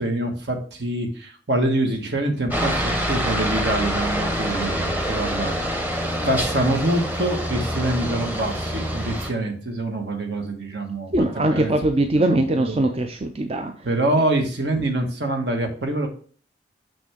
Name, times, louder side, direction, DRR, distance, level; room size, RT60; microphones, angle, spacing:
voice 1, 0.0-5.8 6.2-11.2 11.5-11.7 12.2-12.8 13.8-16.1, right 1 dB, 65° right, 4 dB, 1.5 m, -25 dB
Aircraft, 2.5-9.3, equal, 10° right, 1.0 m, -26 dB
voice 2, 11.1-13.9, right 1 dB, 30° right, 5 dB, 0.5 m, -21 dB
6.1 x 6.1 x 3.6 m, 0.43 s
head